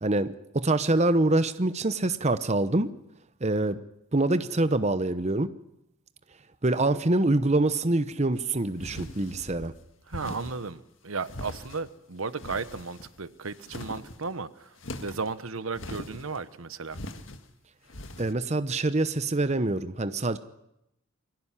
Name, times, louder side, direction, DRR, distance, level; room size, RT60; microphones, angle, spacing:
voice 1, 0.0-2.9 3.4-3.8 4.1-5.5 6.6-9.7 18.2-20.4, right 2 dB, 30° right, 12 dB, 0.9 m, -25 dB
sound 1, 8.8-9.7 10.1-10.7 11.2-11.9 12.3-13.2 13.5-14.2 14.8-15.3 15.7-16.4 16.9-17.4 17.9-18.3, left 1 dB, 65° left, 1.9 m, -41 dB
voice 2, 10.1-17.0, right 4 dB, 75° right, 14 dB, 1.1 m, -35 dB
23.0 x 17.0 x 9.9 m, 0.83 s
head